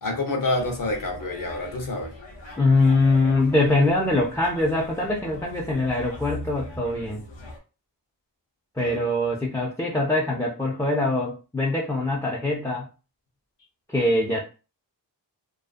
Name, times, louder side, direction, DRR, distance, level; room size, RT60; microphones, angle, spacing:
voice 1, 0.0-2.1 8.8-9.0, left 2 dB, 50° left, 3 dB, 0.7 m, -28 dB
sound 1, 0.6-7.6, left 1 dB, 80° left, 0.8 m, -41 dB
voice 2, 2.6-7.2 8.8-12.9 13.9-14.4, left 2 dB, 10° left, -1 dB, 0.3 m, -23 dB
2.5 x 2.3 x 2.4 m, 0.33 s
wide cardioid pair, 95°, 44 cm